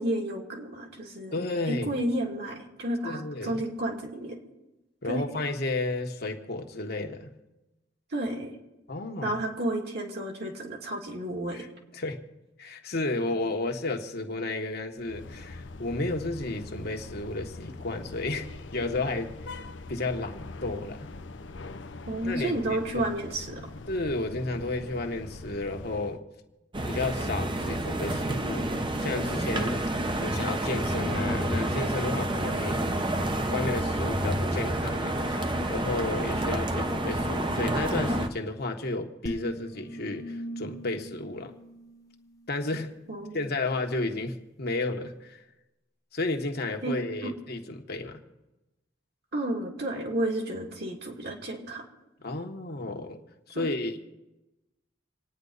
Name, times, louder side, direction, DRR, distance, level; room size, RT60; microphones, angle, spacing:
voice 1, 0.0-1.4 1.7-4.4 5.0-5.2 8.1-8.5 9.2-11.6 22.1-23.7 43.1-43.5 46.8-47.0 47.2-47.3 49.3-51.8 53.5-53.7, right 1 dB, 60° right, 2.7 m, -31 dB
voice 2, 1.3-2.0 3.0-3.6 5.0-7.3 8.9-9.4 11.5-11.7 11.9-12.2 12.6-19.6 19.9-21.1 22.2-23.0 23.9-26.2 26.9-28.7 29.0-29.8 30.2-32.9 33.5-41.5 42.5-43.0 43.3-45.4 46.1-48.2 52.2-53.2 53.5-54.0, left 2 dB, 60° left, 1.5 m, -32 dB
sound 1, 15.0-26.2, left 2 dB, 80° left, 0.8 m, -43 dB
sound 2, 26.7-38.3, right 1 dB, 25° right, 0.9 m, -29 dB
sound 3, 39.3-42.6, right 1 dB, 20° left, 1.2 m, -41 dB
27.5 x 9.7 x 4.1 m
head